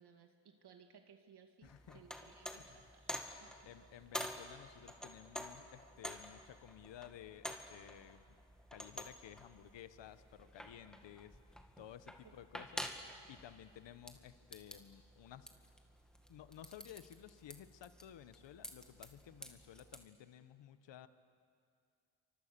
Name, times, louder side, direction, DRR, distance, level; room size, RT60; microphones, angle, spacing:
voice 1, 0.0-3.1 3.4-3.9 12.2-12.3, right 6 dB, 65° right, 5 dB, 2.1 m, -62 dB
voice 2, 1.6-2.0 2.5-2.8 3.6-8.4 8.7-15.5 16.3-21.1, left 11 dB, 80° left, 12 dB, 1.2 m, -55 dB
sound 1, 1.6-20.1, equal, ahead, 2.2 m, -50 dB
29.5 x 25.0 x 6.9 m, 2.3 s
cardioid pair, 105°, 44 cm